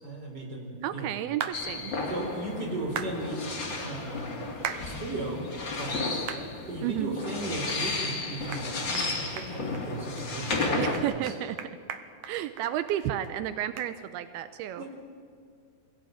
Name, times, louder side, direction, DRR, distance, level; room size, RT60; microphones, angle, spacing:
voice 1, 0.0-1.1 2.1-4.3 4.7-6.3 6.7-11.3 14.7-14.9, right 2 dB, 25° right, 1 dB, 4.7 m, -36 dB
voice 2, 0.8-1.9 6.8-7.2 10.8-11.6 12.3-14.9, right 12 dB, 85° right, 11 dB, 2.7 m, -32 dB
sound 1, 1.4-1.6 3.0-3.1 4.6-4.8 5.4-5.5 6.3-6.4 6.9-7.0 7.7-7.8 8.1-8.2 8.5-8.7 8.9-9.1 9.4-9.8 10.2-10.3 10.6-13.0 13.2-13.3 13.8-13.9, right 9 dB, 65° right, 2.1 m, -36 dB
sound 2, 1.5-11.0, left 3 dB, 35° left, 3.0 m, -33 dB
24.5 x 16.5 x 9.3 m, 2.2 s
omnidirectional pair, 4.4 m